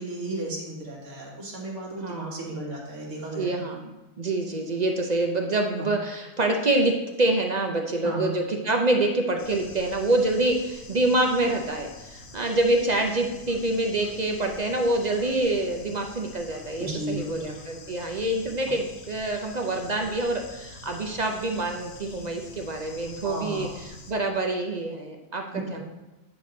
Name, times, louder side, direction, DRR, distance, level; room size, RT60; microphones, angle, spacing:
voice 1, 0.0-3.6 5.8-5.9 8.0-8.2 16.8-17.4 23.2-23.7 25.5-25.7, right 1 dB, 65° right, -2 dB, 1.9 m, -34 dB
voice 2, 2.0-2.5 3.3-25.8, right 2 dB, 45° right, 2 dB, 0.6 m, -26 dB
Bird / Insect, 9.4-24.1, left 3 dB, 55° left, 1.1 m, -46 dB
8.9 x 5.0 x 3.9 m, 1.0 s
omnidirectional pair, 1.4 m